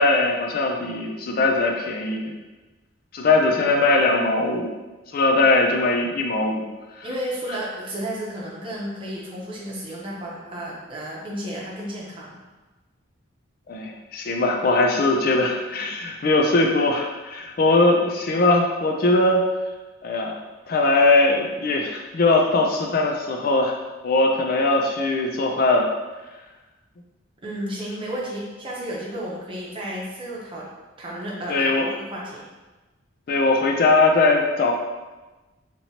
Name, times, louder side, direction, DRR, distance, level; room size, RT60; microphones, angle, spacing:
voice 1, 0.0-2.3 3.1-4.7 5.1-6.6 7.0-7.1 13.7-19.4 20.0-20.4 20.7-23.7 24.0-25.9 31.5-31.9 33.3-34.7, left 2 dB, 45° left, 2 dB, 0.3 m, -20 dB
voice 2, 7.0-12.4 27.4-30.7 31.0-32.4, equal, 25° right, -5 dB, 0.8 m, -32 dB
4.5 x 2.8 x 2.8 m, 1.2 s
head